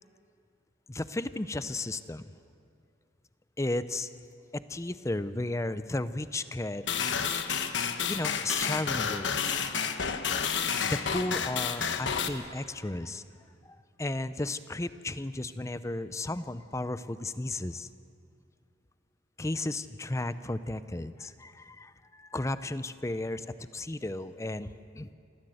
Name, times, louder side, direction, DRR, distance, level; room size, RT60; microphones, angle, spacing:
voice 1, 0.9-2.3 3.6-4.1 4.5-6.8 8.1-9.6 10.8-13.2 14.0-17.9 19.4-23.5 23.7-25.1, left 2 dB, 15° left, 13 dB, 0.6 m, -34 dB
sound 1, 6.9-12.3, left 6 dB, 75° left, 1.1 m, -30 dB
27.0 x 14.5 x 7.9 m, 2.4 s
head